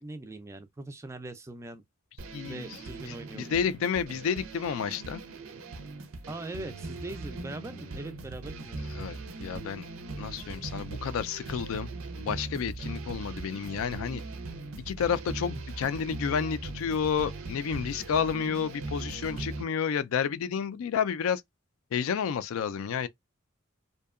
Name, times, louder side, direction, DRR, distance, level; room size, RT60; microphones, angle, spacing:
voice 1, 0.0-1.8 2.4-3.4 6.3-8.8, right 2 dB, 15° right, 0.3 m, -41 dB
sound 1, 2.2-19.6, right 3 dB, 70° right, 0.5 m, -40 dB
voice 2, 2.3-2.7 3.1-5.2 8.8-9.8 10.2-11.9 12.1-14.2 14.9-21.4 21.9-23.1, left 7 dB, 75° left, 0.3 m, -30 dB
2.7 x 2.2 x 2.3 m
head